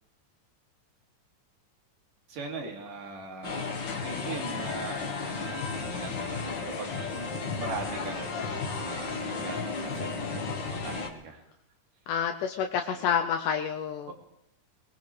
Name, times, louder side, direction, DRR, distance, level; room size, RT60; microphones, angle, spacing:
voice 1, 2.3-3.6 4.0-7.3 7.6-8.4 8.7-11.4 12.9-13.2 14.1-14.2, right 4 dB, 85° right, 1 dB, 4.1 m, -41 dB
sound 1, 3.4-11.1, left 4 dB, 45° left, 1.8 m, -33 dB
voice 2, 12.1-14.1, left 7 dB, 80° left, 4 dB, 2.3 m, -28 dB
21.5 x 20.0 x 3.4 m, 0.88 s
omnidirectional pair, 3.7 m